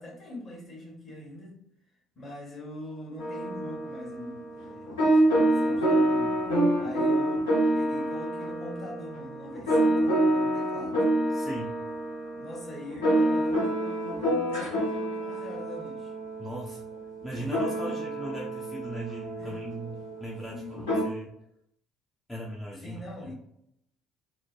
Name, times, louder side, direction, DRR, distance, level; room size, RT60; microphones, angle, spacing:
voice 1, 0.0-1.6 2.1-4.9 5.3-6.4 6.8-7.5 7.7-11.0 12.3-16.1 17.7-18.0 19.4-19.6 20.5-20.9 22.8-23.3, left 1 dB, 40° left, -2 dB, 1.3 m, -42 dB
sound 1, 3.2-21.0, right 1 dB, 75° left, 0.9 m, -27 dB
voice 2, 11.3-11.8 16.4-16.8 17.2-21.3 22.3-23.3, right 1 dB, 15° left, -4 dB, 0.6 m, -38 dB
3.1 x 2.1 x 2.4 m, 0.77 s
figure-of-eight pair, 55°, 0 cm